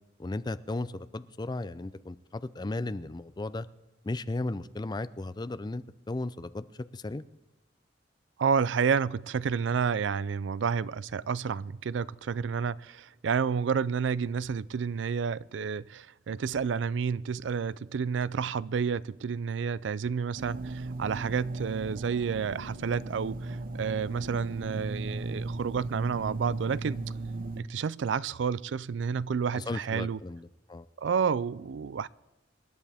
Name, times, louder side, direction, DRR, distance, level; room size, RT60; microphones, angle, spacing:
voice 1, 0.2-3.7 4.0-6.7 6.9-7.2 29.5-30.9, left 2 dB, 20° left, 0.4 m, -35 dB
voice 2, 8.4-27.1 27.6-30.2 31.0-32.1, right 6 dB, 80° right, 0.4 m, -30 dB
sound 1, 20.4-27.6, right 2 dB, 50° right, 0.7 m, -37 dB
27.0 x 11.0 x 3.5 m
head